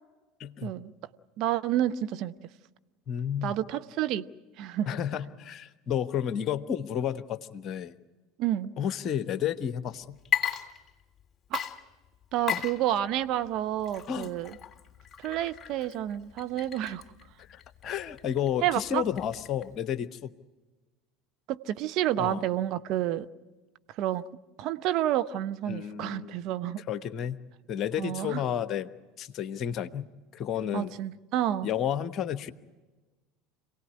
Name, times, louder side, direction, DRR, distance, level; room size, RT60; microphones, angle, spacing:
voice 1, 0.4-0.7 3.1-3.6 4.9-7.9 8.8-10.2 12.5-12.6 14.1-14.3 17.4-20.3 22.2-22.4 25.7-26.4 26.9-27.4 27.7-28.9 29.2-30.9 31.6-32.5, left 9 dB, 40° left, 14 dB, 1.1 m, -31 dB
voice 2, 1.4-2.3 3.4-4.3 4.6-4.9 8.4-8.7 11.5-11.6 12.3-14.5 15.2-17.0 18.6-19.0 21.5-23.3 24.0-24.2 24.6-26.8 28.0-28.4 30.7-31.7, right 12 dB, 50° right, 10 dB, 0.8 m, -29 dB
Water / Liquid, 10.2-11.2 11.5-19.8, left 9 dB, 25° left, 3.2 m, -36 dB
27.0 x 18.0 x 9.6 m, 1.2 s
figure-of-eight pair, 70°, 0 cm